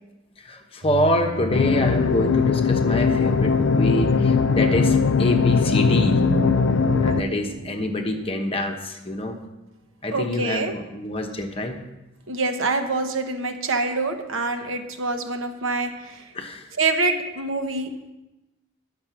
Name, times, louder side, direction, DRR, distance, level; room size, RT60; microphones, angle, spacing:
voice 1, 0.4-6.2 7.0-9.4 10.0-11.8 14.6-14.7 16.3-16.7, left 1 dB, 25° left, 3 dB, 1.0 m, -26 dB
sound 1, 0.8-8.3, right 2 dB, 45° right, 0.9 m, -34 dB
sound 2, 1.5-7.2, left 5 dB, 60° left, 0.4 m, -20 dB
voice 2, 10.1-10.7 12.3-16.2 16.8-17.9, right 3 dB, 75° right, 6 dB, 1.1 m, -25 dB
9.7 x 6.7 x 5.9 m, 1.0 s
head